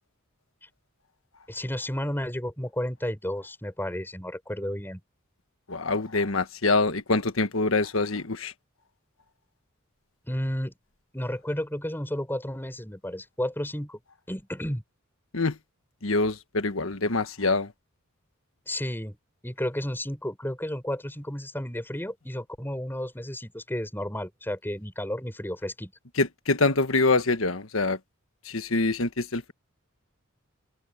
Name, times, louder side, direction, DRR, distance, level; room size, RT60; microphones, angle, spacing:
voice 1, 1.5-5.0 10.3-10.7 11.1-14.0 14.3-14.8 18.7-19.2 19.4-25.9, left 1 dB, 10° left, 7.2 m, -32 dB
voice 2, 5.7-8.5 15.3-15.6 16.0-17.7 26.2-28.0 28.4-29.5, left 3 dB, 70° left, 1.5 m, -25 dB
open air
head